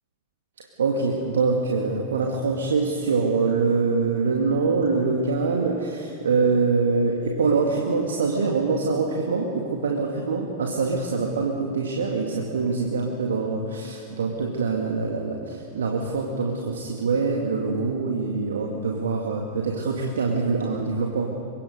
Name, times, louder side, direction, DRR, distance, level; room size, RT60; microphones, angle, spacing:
voice 1, 0.8-21.3, right 4 dB, 65° right, 1 dB, 1.8 m, -24 dB
24.5 x 22.5 x 5.2 m, 2.6 s
figure-of-eight pair, 90°, 0 cm